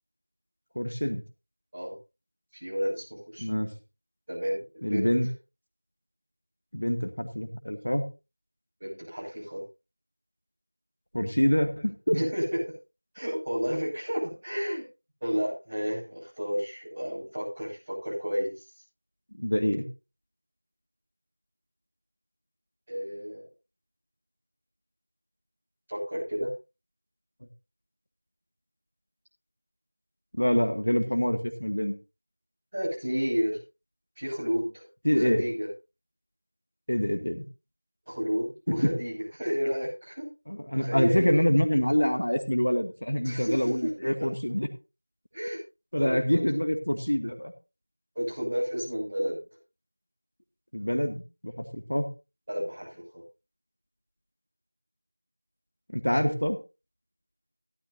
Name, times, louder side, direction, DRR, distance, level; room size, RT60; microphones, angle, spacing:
voice 1, 0.8-1.2 3.4-3.7 4.8-5.3 6.7-8.0 11.1-12.2 19.4-19.9 30.3-32.0 35.0-35.4 36.9-37.4 38.7-38.9 40.5-44.7 45.9-47.5 50.7-52.1 55.9-56.6, equal, 65° left, 6 dB, 2.1 m, -26 dB
voice 2, 2.5-3.5 4.3-5.1 8.8-9.6 12.1-12.6 13.1-14.8 15.2-18.6 22.9-23.4 25.9-26.5 32.7-33.6 34.2-35.7 38.1-40.3 40.7-41.4 43.2-43.9 45.3-45.6 46.0-46.4 48.2-49.4 52.5-53.2, equal, 15° right, -9 dB, 6.9 m, -31 dB
16.0 x 12.5 x 2.8 m, 0.29 s
figure-of-eight pair, 175°, 0 cm